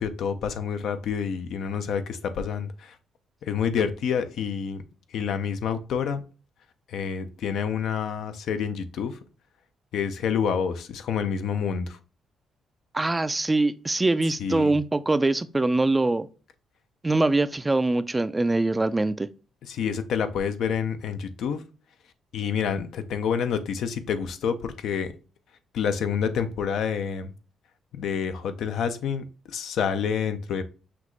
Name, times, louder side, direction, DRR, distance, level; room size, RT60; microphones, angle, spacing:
voice 1, 0.0-2.9 3.5-4.8 5.1-6.2 6.9-9.2 9.9-12.0 14.4-14.7 19.7-21.6 22.3-25.1 25.7-27.3 27.9-30.6, left 7 dB, 75° left, 0.5 m, -28 dB
voice 2, 12.9-16.3 17.0-19.3, right 2 dB, 15° right, 0.3 m, -23 dB
5.9 x 2.4 x 3.0 m
cardioid pair, 90°, 0 cm